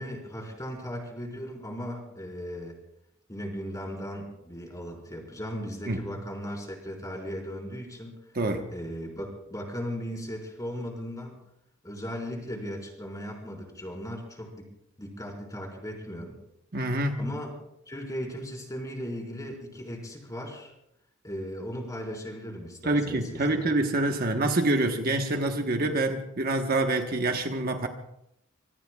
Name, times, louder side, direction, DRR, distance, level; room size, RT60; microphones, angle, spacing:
voice 1, 0.0-2.7 3.3-8.2 8.7-11.4 11.8-14.7 15.0-16.4 17.2-17.6 17.9-20.7 21.2-23.7, equal, 15° left, -1 dB, 4.6 m, -37 dB
voice 2, 16.7-17.2 22.8-27.9, right 2 dB, 45° right, 4 dB, 1.2 m, -26 dB
25.5 x 23.0 x 2.4 m, 0.81 s
head